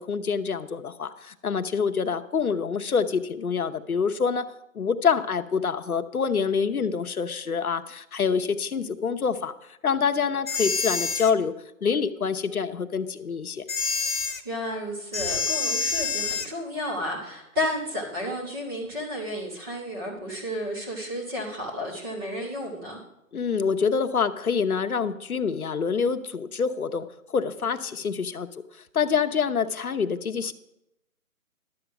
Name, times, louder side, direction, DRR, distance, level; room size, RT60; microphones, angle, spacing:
voice 1, 0.0-9.5 9.8-11.5 11.8-13.6 23.3-28.5 28.9-30.5, left 6 dB, 80° left, 8 dB, 1.0 m, -26 dB
sound 1, 10.5-11.3 13.7-14.4 15.1-16.5, left 4 dB, 65° left, 1.4 m, -27 dB
voice 2, 14.4-23.0, left 1 dB, 15° right, -2 dB, 2.1 m, -32 dB
12.0 x 8.0 x 6.0 m, 0.85 s
hypercardioid pair, 170°, 43 cm